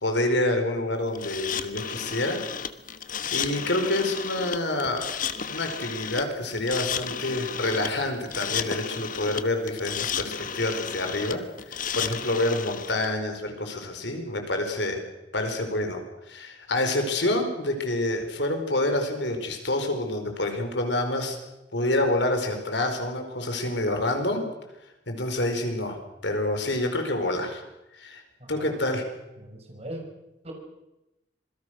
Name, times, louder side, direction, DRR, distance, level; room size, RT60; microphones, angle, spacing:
voice 1, 0.0-2.4 3.3-5.1 5.5-11.4 11.7-15.0 15.3-16.0 16.3-21.4 21.7-24.5 25.1-27.6 28.0-28.2 28.5-29.0, left 1 dB, 70° left, 5 dB, 4.7 m, -27 dB
sound 1, 1.1-13.1, left 7 dB, 45° left, 1.3 m, -33 dB
voice 2, 28.4-28.8 29.4-30.0 30.4-30.5, right 1 dB, 35° right, 2 dB, 6.1 m, -39 dB
26.5 x 21.5 x 6.5 m, 0.96 s
head